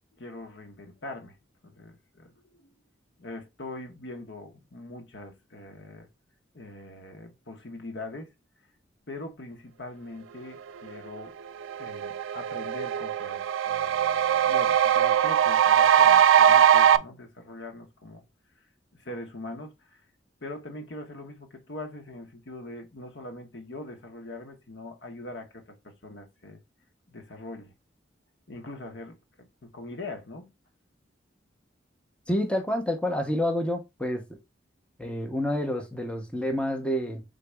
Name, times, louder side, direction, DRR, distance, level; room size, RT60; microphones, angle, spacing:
voice 1, 0.1-1.4 1.6-2.7 3.2-6.1 6.5-8.3 9.1-11.3 11.8-18.2 18.9-20.0 20.4-26.6 27.1-27.7 28.5-29.2 29.6-30.5, left 2 dB, 65° left, 1.0 m, -42 dB
sound 1, 11.2-11.3 11.6-17.0, right 9 dB, 90° right, 0.3 m, -21 dB
voice 2, 32.3-34.2 35.0-37.2, left 1 dB, 5° left, 0.7 m, -28 dB
4.0 x 3.9 x 3.4 m
head